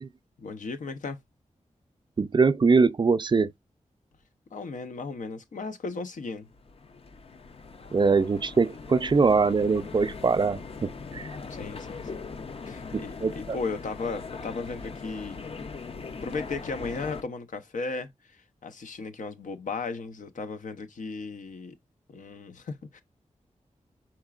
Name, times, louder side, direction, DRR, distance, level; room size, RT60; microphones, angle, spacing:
voice 1, 0.4-1.2 4.5-6.5 11.5-12.2 12.6-15.4 16.2-21.7 22.1-23.0, left 4 dB, 90° left, 0.8 m, -36 dB
voice 2, 2.2-3.5 7.9-11.3 12.9-13.6, right 4 dB, 35° right, 0.4 m, -23 dB
sound 1, 6.4-17.2, left 4 dB, 50° left, 0.5 m, -40 dB
4.9 x 4.4 x 2.3 m
wide cardioid pair, 105°, 13 cm